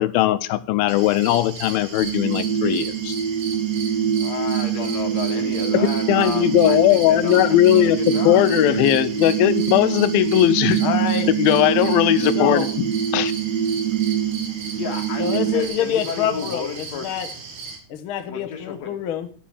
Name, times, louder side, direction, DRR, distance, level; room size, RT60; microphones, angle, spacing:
voice 1, 0.0-3.1 6.1-8.0 8.3-10.8 11.4-12.7 13.1-13.3, left 14 dB, 85° left, 2.5 m, -18 dB
sound 1, 0.9-17.8, right 5 dB, 90° right, 4.1 m, -36 dB
sound 2, 2.0-15.7, right 9 dB, 70° right, 3.6 m, -24 dB
voice 2, 4.2-8.5 14.8-17.2 18.3-18.9, left 6 dB, 55° left, 2.6 m, -32 dB
voice 3, 10.8-11.3 12.3-12.7 15.2-17.3 17.9-19.3, left 9 dB, 70° left, 1.2 m, -26 dB
9.9 x 7.4 x 7.0 m
omnidirectional pair, 4.1 m